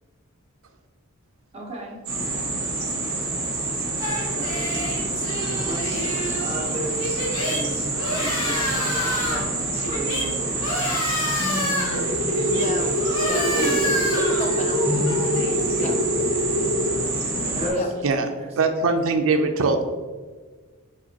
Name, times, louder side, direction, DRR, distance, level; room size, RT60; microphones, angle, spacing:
voice 1, 1.5-2.0 4.3-5.2 5.6-7.2 7.5-7.9 8.2-10.7 11.3-12.1 13.5-13.8 14.9-15.0 17.3-18.8, equal, 30° right, -2 dB, 1.0 m, -33 dB
sound 1, 2.0-17.7, right 2 dB, 45° right, 1.4 m, -27 dB
sound 2, 4.0-17.9, left 1 dB, 70° left, 1.0 m, -30 dB
sound 3, 11.9-16.9, equal, ahead, 1.2 m, -25 dB
voice 2, 12.5-13.6 13.8-14.9 15.8-16.0 17.7-17.9, left 2 dB, 35° left, 4 dB, 0.5 m, -34 dB
voice 3, 18.6-19.8, right 3 dB, 65° right, 5 dB, 0.5 m, -21 dB
4.7 x 3.9 x 2.9 m, 1.4 s
head